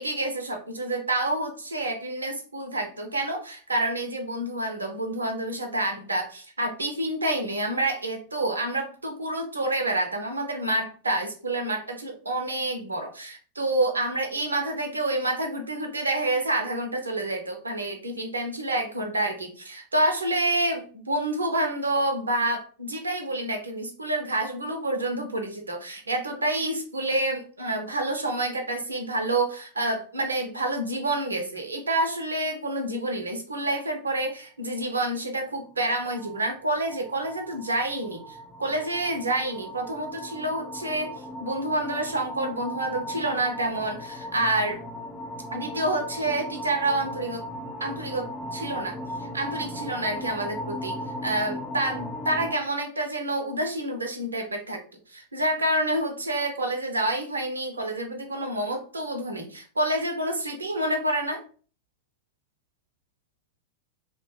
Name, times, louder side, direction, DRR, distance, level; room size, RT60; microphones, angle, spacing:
voice 1, 0.0-44.8 45.5-47.4 47.8-54.8 55.1-61.4, right 1 dB, 75° right, 4 dB, 0.6 m, -28 dB
sound 1, 35.6-52.5, equal, 10° left, 0.4 m, -37 dB
2.8 x 2.1 x 3.1 m, 0.41 s
figure-of-eight pair, 90°, 0 cm